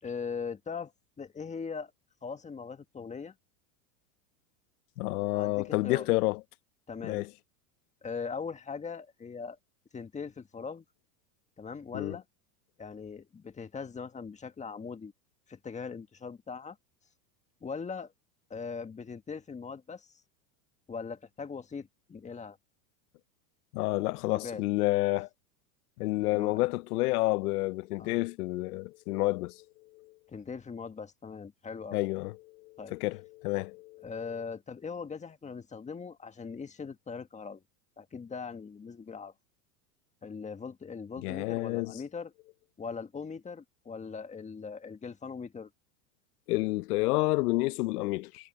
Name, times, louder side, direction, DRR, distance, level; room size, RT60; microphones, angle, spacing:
voice 1, 0.0-1.9 2.2-3.3 5.3-6.1 6.9-7.2 8.0-9.6 9.9-10.8 11.6-12.2 12.8-15.1 15.5-16.8 17.6-18.1 18.5-20.1 20.9-22.6 24.2-24.6 26.3-26.6 28.0-28.2 30.3-32.0 32.8-33.0 34.0-37.6 38.0-39.3 40.2-42.3 42.8-45.7, left 5 dB, 15° left, 1.6 m, -40 dB
voice 2, 5.0-6.4 7.0-7.3 11.9-12.1 23.7-25.3 26.0-29.6 29.9-30.1 31.9-34.1 41.2-42.0 46.5-48.5, left 20 dB, 75° left, 0.8 m, -29 dB
supercardioid pair, 120°, 46 cm